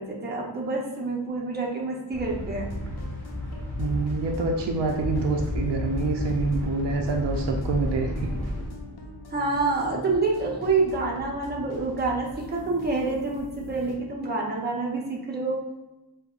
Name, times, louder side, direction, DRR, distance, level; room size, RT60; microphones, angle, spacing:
voice 1, 0.0-2.7 9.3-15.6, right 3 dB, 25° right, -2 dB, 0.6 m, -27 dB
sound 1, 2.1-8.6, left 1 dB, 5° left, 1.2 m, -32 dB
sound 2, 2.6-13.9, left 1 dB, 65° left, 0.7 m, -43 dB
voice 2, 3.8-8.3, right 3 dB, 75° right, 2 dB, 0.5 m, -26 dB
5.3 x 2.1 x 2.3 m, 1.0 s
wide cardioid pair, 160°, 42 cm